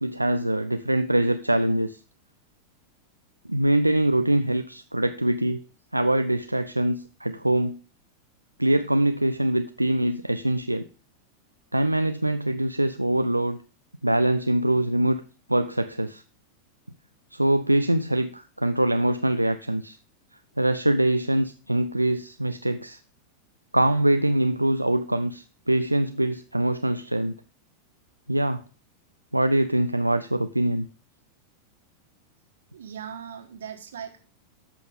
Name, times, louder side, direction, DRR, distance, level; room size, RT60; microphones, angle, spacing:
voice 1, 0.0-2.0 3.5-5.6 5.9-7.8 8.6-10.9 11.7-13.6 14.0-15.2 15.5-16.2 17.3-20.0 20.6-23.0 23.7-27.4 28.3-28.6 29.3-30.9, right 1 dB, 85° right, 9 dB, 0.4 m, -23 dB
voice 2, 32.7-34.2, right 8 dB, 65° right, 6 dB, 1.6 m, -39 dB
13.0 x 5.7 x 3.7 m, 0.38 s
figure-of-eight pair, 90°, 0 cm